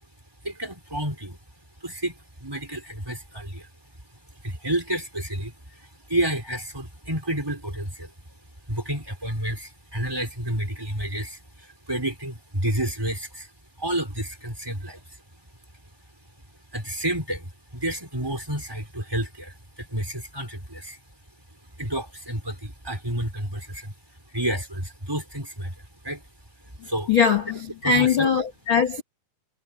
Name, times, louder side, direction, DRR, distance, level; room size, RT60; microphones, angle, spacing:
voice 1, 0.4-1.4 1.8-3.7 4.1-8.1 8.7-13.5 13.8-15.2 16.7-21.0 21.5-23.9 24.3-26.2 26.6-27.1 27.8-28.3, right 1 dB, 5° right, 4.7 m, -30 dB
voice 2, 27.1-29.0, left 6 dB, 60° left, 1.3 m, -21 dB
omnidirectional pair, 5.2 m